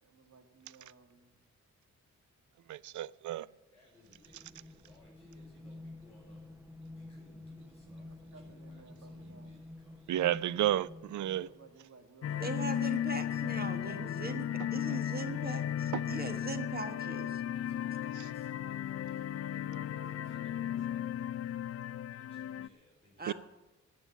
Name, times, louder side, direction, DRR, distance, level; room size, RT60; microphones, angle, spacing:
voice 1, 0.0-1.4 6.2-6.4 8.0-9.6 11.4-13.1 19.3-21.5, right 4 dB, 60° right, 2.4 m, -59 dB
voice 2, 2.7-3.5 10.1-11.5 14.9-15.0 15.9-16.0 23.3-23.4, right 13 dB, 80° right, 0.5 m, -31 dB
voice 3, 3.7-6.4 6.9-9.9 11.3-11.5 17.5-19.3 20.2-21.0 22.1-23.3, left 2 dB, 10° left, 5.6 m, -63 dB
sound 1, 4.1-11.8, left 2 dB, 10° right, 0.8 m, -51 dB
sound 2, 12.2-22.7, left 10 dB, 55° left, 0.5 m, -35 dB
voice 4, 12.4-17.4 23.2-23.3, right 3 dB, 30° right, 1.5 m, -40 dB
13.0 x 8.6 x 8.5 m
cardioid pair, 100°, 29 cm